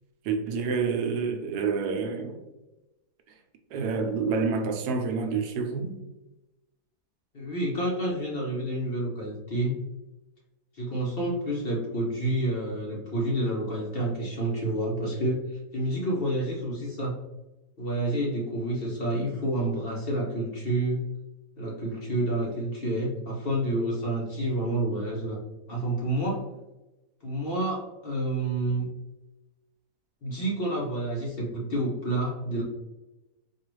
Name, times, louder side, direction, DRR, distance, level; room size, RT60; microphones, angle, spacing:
voice 1, 0.2-2.4 3.7-6.0, right 5 dB, 80° right, 1.2 m, -28 dB
voice 2, 7.3-9.7 10.8-17.2 17.8-21.0 21.6-25.4 25.7-26.4 27.2-28.9 30.2-32.6, right 1 dB, 45° left, 0.9 m, -29 dB
4.5 x 2.4 x 3.1 m
omnidirectional pair, 1.7 m